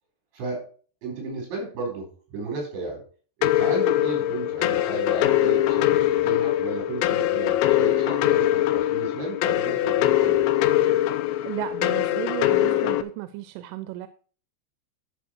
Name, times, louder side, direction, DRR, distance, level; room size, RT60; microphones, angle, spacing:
voice 1, 0.3-0.7 1.0-3.0 3.4-10.5, right 2 dB, 70° right, 1 dB, 6.3 m, -33 dB
sound 1, 3.4-13.0, left 13 dB, 85° left, 3.0 m, -22 dB
voice 2, 11.4-14.1, right 16 dB, 90° right, 12 dB, 3.0 m, -34 dB
12.5 x 5.8 x 4.5 m, 0.41 s
omnidirectional pair, 5.3 m